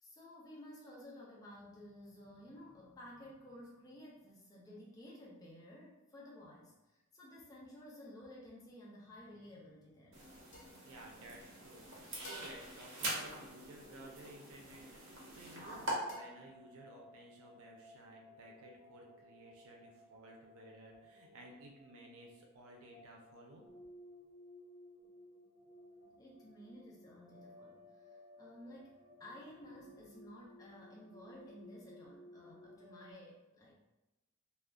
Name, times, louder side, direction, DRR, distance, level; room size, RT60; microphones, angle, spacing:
voice 1, 0.0-10.3 26.2-33.7, left 1 dB, 20° left, -5 dB, 0.4 m, -54 dB
sound 1, 10.1-15.9, right 1 dB, 60° right, 0.8 m, -44 dB
sound 2, 10.5-11.7 12.2-14.0 16.1-17.1, left 1 dB, 65° left, 0.8 m, -57 dB
voice 2, 10.8-23.6, right 1 dB, 90° right, 0 dB, 0.5 m, -55 dB
sound 3, 15.6-33.1, left 1 dB, 10° right, 1.0 m, -59 dB
2.3 x 2.1 x 3.5 m, 1.0 s
head